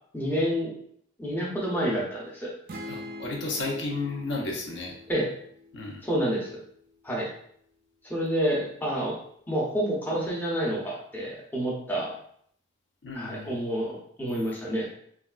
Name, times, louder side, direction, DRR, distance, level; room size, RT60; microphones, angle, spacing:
voice 1, 0.1-0.7 1.2-2.5 5.1-5.3 6.0-6.6 7.0-7.3 8.1-9.2 9.5-12.1 13.1-14.9, equal, 10° left, -4 dB, 0.6 m, -28 dB
sound 1, 2.7-6.4, left 1 dB, 45° right, 0.3 m, -43 dB
voice 2, 2.9-4.9 5.7-6.0 13.0-13.5, left 3 dB, 60° left, -1 dB, 0.6 m, -33 dB
3.3 x 2.3 x 2.3 m, 0.66 s
head